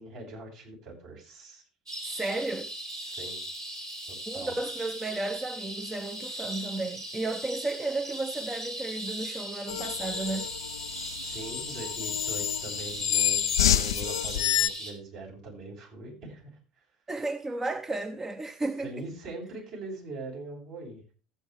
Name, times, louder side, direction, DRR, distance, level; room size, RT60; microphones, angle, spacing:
voice 1, 0.0-1.6 3.0-3.4 4.1-4.5 11.2-16.6 18.8-21.0, right 2 dB, 60° right, 6.8 m, -42 dB
sound 1, 1.9-14.9, right 1 dB, 85° right, 3.2 m, -39 dB
voice 2, 2.0-2.7 4.3-10.5 17.1-18.9, right 2 dB, 15° right, 0.8 m, -33 dB
sound 2, 9.7-14.7, left 10 dB, 75° left, 0.4 m, -28 dB
14.5 x 8.8 x 3.4 m
figure-of-eight pair, 65°, 2 cm